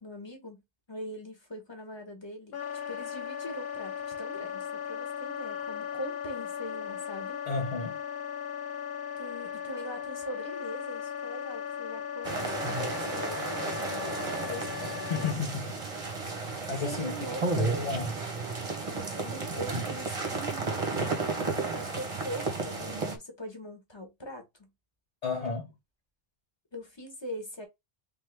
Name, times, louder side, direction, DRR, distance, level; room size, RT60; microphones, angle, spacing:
voice 1, 0.0-0.6 0.9-2.6 2.9-7.4 9.2-15.3 16.8-17.4 19.0-21.1 21.4-24.7 26.7-27.7, equal, 25° left, 1.3 m, -42 dB
Wind instrument woodwind instrument, 2.5-15.4, left 8 dB, 70° left, 0.9 m, -37 dB
voice 2, 7.5-8.0 15.1-15.8 16.7-18.2 25.2-25.7, left 4 dB, 40° left, 0.9 m, -33 dB
sound 1, 12.2-23.2, right 3 dB, 35° right, 0.8 m, -33 dB
3.6 x 3.4 x 3.3 m
omnidirectional pair, 1.0 m